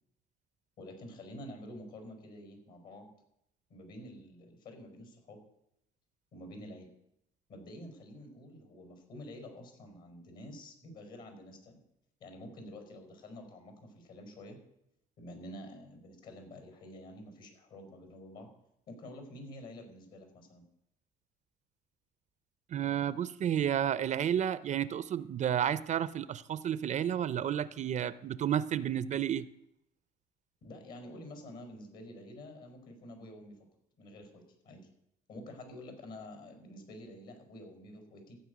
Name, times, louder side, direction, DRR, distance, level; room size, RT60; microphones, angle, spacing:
voice 1, 0.8-3.1 3.7-5.4 6.3-6.9 7.5-11.8 12.2-14.6 15.2-18.5 18.9-20.6 30.6-33.6 34.0-34.9 35.3-38.4, left 1 dB, 60° left, 5 dB, 5.1 m, -48 dB
voice 2, 22.7-29.5, right 9 dB, 45° right, 16 dB, 0.5 m, -31 dB
14.5 x 5.5 x 9.4 m, 0.79 s
cardioid pair, 110°, 17 cm